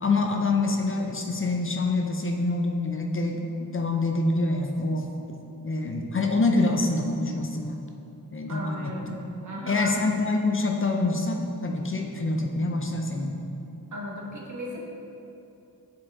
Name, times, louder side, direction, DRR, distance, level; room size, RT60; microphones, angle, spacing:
voice 1, 0.0-5.0 5.6-7.8 8.3-8.9 9.7-13.4, left 2 dB, 35° left, 2 dB, 0.5 m, -26 dB
voice 2, 8.5-9.2 9.4-10.0 13.9-14.8, equal, 55° right, -2 dB, 1.2 m, -35 dB
7.5 x 4.3 x 3.6 m, 2.8 s
wide cardioid pair, 80°, 35 cm